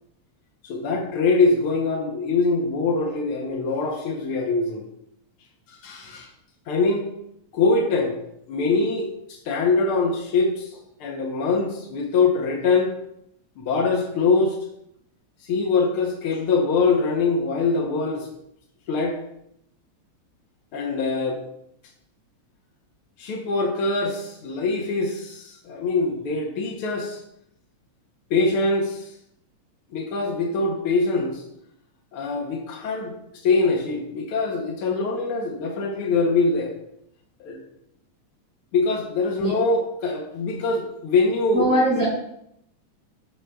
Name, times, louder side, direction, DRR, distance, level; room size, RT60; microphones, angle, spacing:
voice 1, 0.6-4.8 5.7-6.3 6.7-7.1 7.5-8.2 8.5-12.9 13.6-14.6 15.4-18.3 18.9-19.2 20.7-21.4 23.2-27.2 28.3-29.1 29.9-31.4 32.1-36.7 37.4-37.6 38.7-42.0, left 3 dB, 70° left, 0 dB, 1.3 m, -23 dB
voice 2, 41.5-42.1, right 1 dB, 5° right, -6 dB, 2.2 m, -20 dB
13.5 x 4.8 x 2.3 m, 0.77 s
omnidirectional pair, 3.5 m